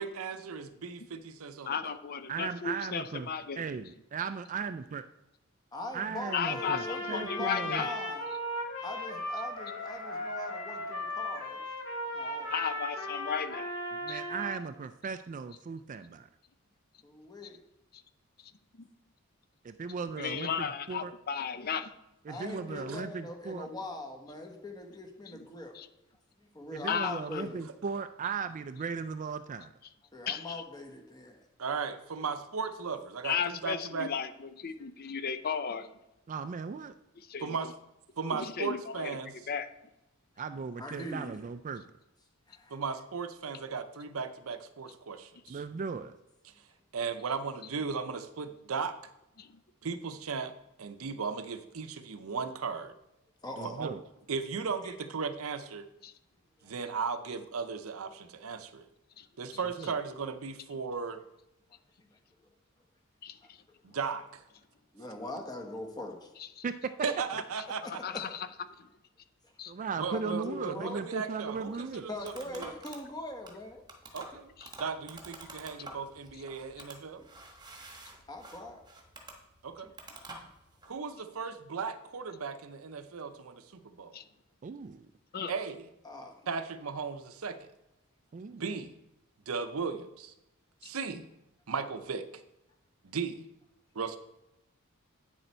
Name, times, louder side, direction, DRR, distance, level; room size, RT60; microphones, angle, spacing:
voice 1, 0.0-2.0 22.9-23.0 31.6-34.1 37.4-37.7 38.2-39.3 42.7-45.6 46.9-48.9 49.8-50.5 50.8-52.9 53.6-53.9 54.3-55.9 56.6-58.8 59.4-61.2 63.8-64.4 67.0-68.0 70.0-72.7 74.1-74.5 74.8-77.2 79.6-79.9 80.9-84.2 85.5-85.9 86.5-87.7 88.5-89.0 89.5-90.3 90.8-91.3 91.7-92.3 93.0-93.4 93.9-94.2, right 5 dB, 70° right, 11 dB, 0.7 m, -36 dB
voice 2, 1.7-3.7 6.3-7.9 12.5-13.7 14.1-14.2 20.2-21.8 25.7-25.9 26.9-27.4 30.3-30.6 33.2-35.9 37.3-37.5 38.3-39.2 39.5-39.7 49.4-49.5 56.0-56.1 59.2-59.3 63.2-63.6 66.6-66.7 67.8-68.5 68.8-68.9 69.6-69.7 74.6-74.7 84.1-84.2 85.3-85.5 90.8-90.9, left 7 dB, 45° left, 11 dB, 0.5 m, -35 dB
voice 3, 2.3-3.3 3.6-5.0 5.9-7.8 13.9-16.3 19.6-21.1 22.3-23.7 26.7-29.7 36.3-36.9 40.4-41.8 45.5-46.2 53.6-54.0 59.8-60.0 66.6-66.9 69.7-72.1 84.6-85.1 88.3-88.6, right 5 dB, 35° right, 11 dB, 0.3 m, -37 dB
voice 4, 5.7-8.2 8.8-11.6 12.1-12.5 17.0-17.6 22.3-25.7 26.4-27.6 30.1-31.4 40.8-41.3 42.5-42.8 53.4-53.8 54.8-54.9 56.6-56.7 63.9-64.0 64.9-66.3 67.8-68.2 70.1-71.1 72.1-73.8 78.3-78.8 86.0-86.4, left 2 dB, 20° left, 3 dB, 1.3 m, -41 dB
Trumpet, 6.2-14.6, left 1 dB, 65° left, 2.0 m, -37 dB
sound 1, 71.5-81.0, right 2 dB, 20° right, 1.3 m, -49 dB
9.0 x 6.7 x 4.4 m, 0.90 s
head